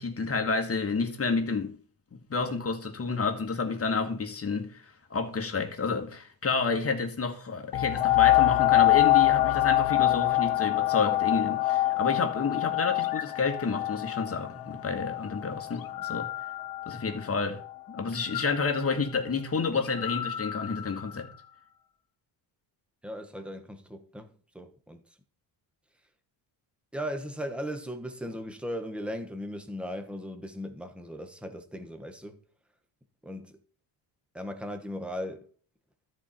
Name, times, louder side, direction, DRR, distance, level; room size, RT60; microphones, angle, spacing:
voice 1, 0.0-1.7 2.1-4.9 5.1-16.3 16.9-17.6 17.9-21.3, left 4 dB, 30° left, 1.7 m, -30 dB
sound 1, 7.7-17.0 17.6-17.7, left 16 dB, 85° left, 0.6 m, -25 dB
sound 2, 11.0-12.3 13.0-14.2 15.7-17.5 18.1-21.6, left 10 dB, 50° left, 0.8 m, -40 dB
voice 2, 23.0-25.2 26.9-32.4 33.2-33.6 34.3-35.5, equal, ahead, 1.2 m, -37 dB
13.0 x 4.5 x 4.4 m
cardioid pair, 100°, 47 cm